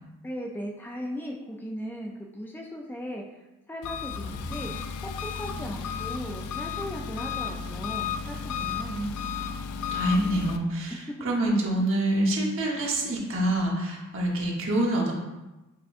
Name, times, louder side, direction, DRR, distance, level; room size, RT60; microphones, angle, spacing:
voice 1, 0.2-3.2 3.7-4.7 5.0-9.0, equal, 10° left, 0 dB, 0.3 m, -37 dB
Engine, 3.8-10.6, left 6 dB, 85° left, 0.4 m, -33 dB
voice 2, 9.7-15.1, right 1 dB, 60° right, -2 dB, 1.0 m, -26 dB
5.7 x 3.6 x 2.5 m, 1.1 s
head